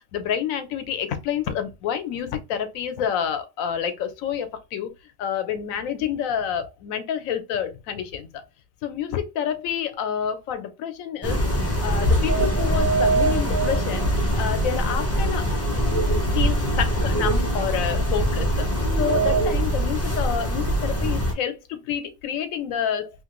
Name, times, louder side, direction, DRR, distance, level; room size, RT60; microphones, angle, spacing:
voice 1, 0.0-4.9 5.2-8.3 8.8-11.4 11.8-14.1 14.4-15.4 16.3-18.7 19.0-23.1, left 8 dB, 85° left, 1.0 m, -28 dB
sound 1, 11.2-21.3, right 1 dB, 15° left, 0.5 m, -22 dB
3.0 x 2.4 x 2.9 m
omnidirectional pair, 1.4 m